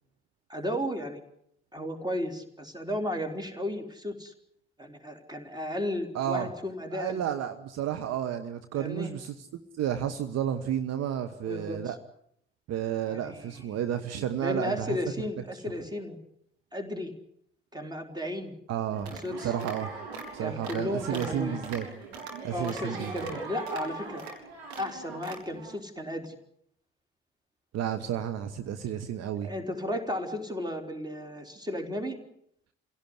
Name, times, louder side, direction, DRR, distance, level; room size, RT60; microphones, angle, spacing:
voice 1, 0.5-1.2 1.7-4.3 4.8-7.2 8.7-9.1 11.4-11.9 13.1-13.7 14.4-16.2 16.7-17.1 17.7-18.6 19.1-19.5 20.4-21.6 22.5-24.2 24.8-26.3 29.4-32.2, left 1 dB, 10° right, 6 dB, 4.0 m, -34 dB
voice 2, 6.1-6.5 6.9-9.5 9.7-12.0 12.7-15.0 18.7-19.9 20.3-21.9 22.4-23.4 27.7-29.5, right 10 dB, 50° right, 9 dB, 1.3 m, -32 dB
sound 1, 18.9-25.8, right 4 dB, 75° right, 4.1 m, -40 dB
26.5 x 17.0 x 9.8 m, 0.72 s
figure-of-eight pair, 45°, 32 cm